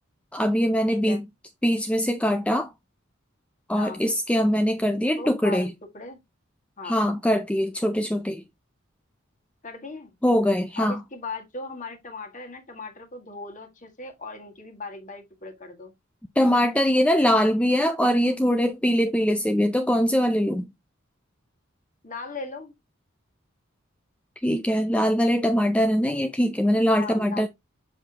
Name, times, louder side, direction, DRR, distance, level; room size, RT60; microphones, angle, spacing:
voice 1, 0.3-1.2 1.6-2.7 3.7-5.7 6.8-8.4 10.2-11.0 16.4-20.7 24.4-27.5, equal, 5° left, 0.4 m, -22 dB
voice 2, 0.9-1.2 3.8-4.0 5.2-5.7 5.9-6.2 6.8-7.0 9.6-10.1 10.8-15.9 22.0-22.7 27.0-27.5, left 3 dB, 40° left, 1.8 m, -38 dB
7.0 x 5.8 x 2.8 m
head